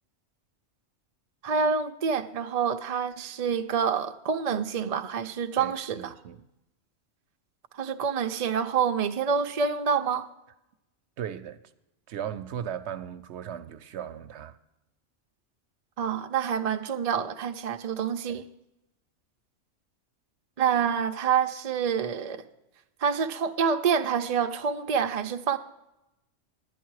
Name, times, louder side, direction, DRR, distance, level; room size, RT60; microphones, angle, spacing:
voice 1, 1.4-6.1 7.7-10.3 16.0-18.4 20.6-22.4 23.0-25.6, right 6 dB, 50° right, 0.5 m, -27 dB
voice 2, 5.6-6.4 11.2-11.6 12.1-14.6 18.3-18.4, right 9 dB, 70° right, 0.8 m, -37 dB
11.0 x 10.0 x 4.7 m
omnidirectional pair, 1.3 m